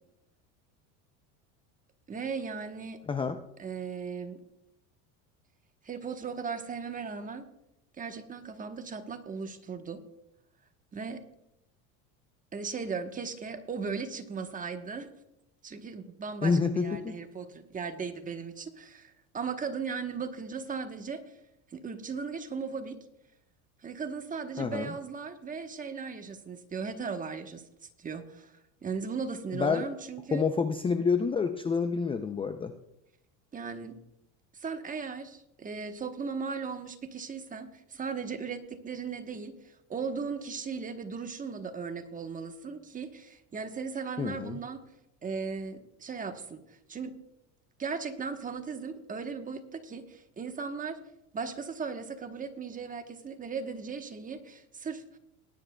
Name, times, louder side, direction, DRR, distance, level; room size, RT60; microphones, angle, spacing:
voice 1, 2.1-3.0 3.6-4.4 5.8-7.5 8.0-10.0 10.9-11.2 12.5-15.1 15.6-21.2 21.7-23.0 23.8-27.6 28.0-28.5 28.8-30.4 33.5-34.0 34.5-44.8 45.2-47.1 47.8-51.0 51.3-55.2, right 5 dB, 20° right, 7 dB, 1.1 m, -37 dB
voice 2, 3.1-3.4 16.4-17.1 24.6-24.9 29.5-29.8 30.3-32.7 44.2-44.6, left 5 dB, 15° left, 8 dB, 0.4 m, -28 dB
19.0 x 10.0 x 2.3 m, 0.84 s
supercardioid pair, 110°, 37 cm